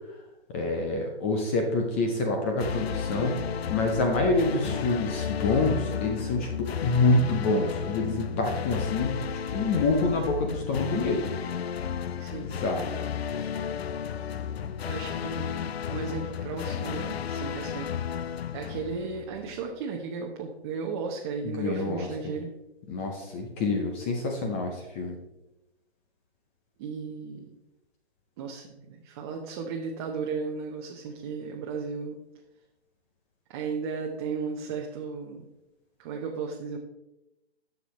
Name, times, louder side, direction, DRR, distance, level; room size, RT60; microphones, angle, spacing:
voice 1, 0.5-3.4 3.7-9.2 9.5-11.3 12.4-12.9 21.4-22.3 22.9-25.1, left 3 dB, 10° left, 3 dB, 0.4 m, -27 dB
sound 1, 2.6-19.6, left 8 dB, 65° left, 0.6 m, -33 dB
voice 2, 12.2-12.5 14.8-17.9 18.5-22.5 26.8-27.5 28.4-32.2 33.5-35.5 36.0-36.8, right 5 dB, 25° right, 0 dB, 0.8 m, -35 dB
11.5 x 6.9 x 3.1 m, 0.94 s
figure-of-eight pair, 135°, 33 cm